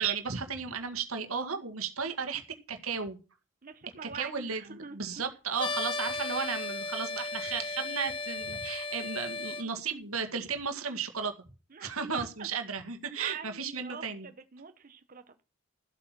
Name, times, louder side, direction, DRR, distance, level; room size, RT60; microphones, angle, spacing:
voice 1, 0.0-3.2 4.0-11.3 11.8-14.3, right 6 dB, 85° right, 6 dB, 2.0 m, -34 dB
voice 2, 3.6-5.2 11.7-12.5 13.2-15.4, right 6 dB, 40° right, 8 dB, 0.8 m, -46 dB
sound 1, 5.6-9.6, left 3 dB, 25° left, 1.1 m, -35 dB
14.0 x 8.3 x 6.0 m, 0.34 s
head